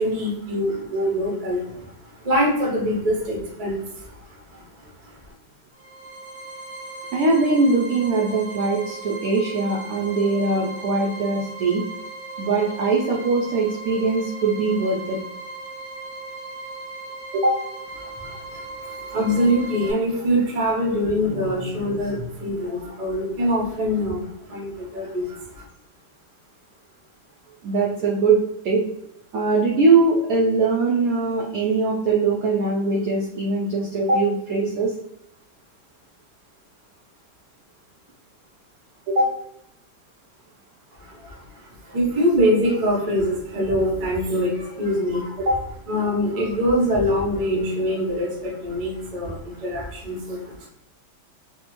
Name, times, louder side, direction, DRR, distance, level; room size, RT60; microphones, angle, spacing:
voice 1, 0.0-5.2 18.0-25.6 41.0-45.4 45.9-50.7, equal, 50° right, -3 dB, 0.4 m, -24 dB
sound 1, 5.7-19.9, right 2 dB, 55° left, 0.9 m, -37 dB
voice 2, 7.1-11.8 12.4-15.2 17.3-17.6 27.6-28.4 28.6-28.8 29.3-34.9 39.1-39.3 45.4-45.6, right 3 dB, 80° right, -2 dB, 0.8 m, -21 dB
3.3 x 2.1 x 3.0 m, 0.78 s
omnidirectional pair, 2.1 m